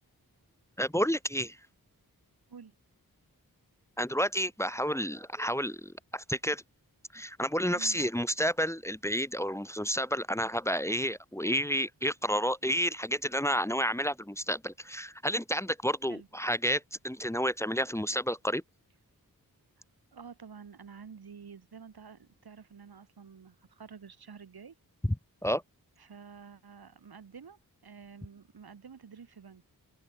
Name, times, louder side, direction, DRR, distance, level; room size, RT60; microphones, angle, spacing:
voice 1, 0.8-1.6 4.0-6.6 7.1-18.6 25.4-25.6, equal, 10° left, 1.1 m, -30 dB
voice 2, 7.7-8.0 16.1-16.3 20.1-24.8 26.0-29.6, right 6 dB, 85° right, 2.4 m, -50 dB
open air
wide cardioid pair, 85°, 36 cm